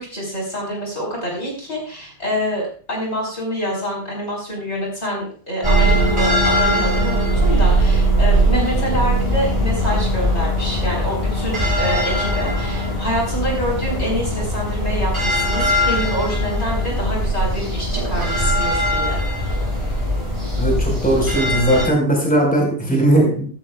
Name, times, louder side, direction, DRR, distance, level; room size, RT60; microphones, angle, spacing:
voice 1, 0.0-19.2, equal, 40° left, -2 dB, 4.4 m, -26 dB
sound 1, 5.6-21.8, equal, 15° right, 7.5 m, -20 dB
voice 2, 20.5-23.4, right 1 dB, 5° left, -1 dB, 4.4 m, -18 dB
16.0 x 14.5 x 2.3 m, 0.43 s
omnidirectional pair, 1.7 m